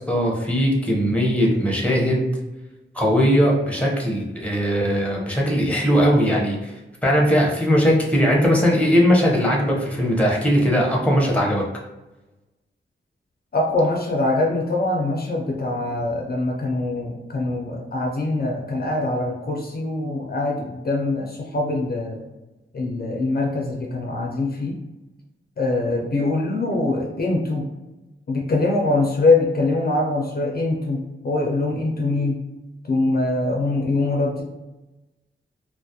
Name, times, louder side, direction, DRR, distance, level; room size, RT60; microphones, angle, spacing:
voice 1, 0.0-2.3 2.9-6.7 7.0-11.6, equal, 5° left, -2 dB, 0.6 m, -19 dB
voice 2, 13.5-22.2 22.7-24.8 25.6-27.7 28.3-32.4 32.9-34.4, left 2 dB, 50° left, 0 dB, 0.4 m, -23 dB
2.3 x 2.0 x 2.7 m, 1.1 s
wide cardioid pair, 75°, 21 cm